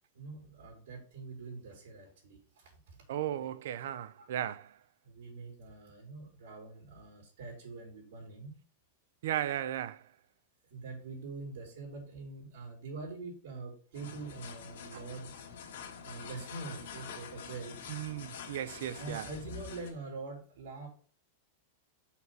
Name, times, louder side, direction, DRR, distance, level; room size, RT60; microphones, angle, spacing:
voice 1, 0.1-3.0 3.3-3.6 4.2-4.3 5.0-8.6 10.7-15.3 16.0-17.8 18.9-20.9, right 3 dB, 80° right, 3.2 m, -45 dB
voice 2, 3.1-4.8 9.2-10.1 14.9-15.0 17.9-19.3, right 11 dB, 65° right, 0.5 m, -36 dB
sound 1, 13.9-19.9, left 7 dB, 70° left, 1.6 m, -46 dB
5.7 x 4.6 x 5.8 m
supercardioid pair, 170°, 0 cm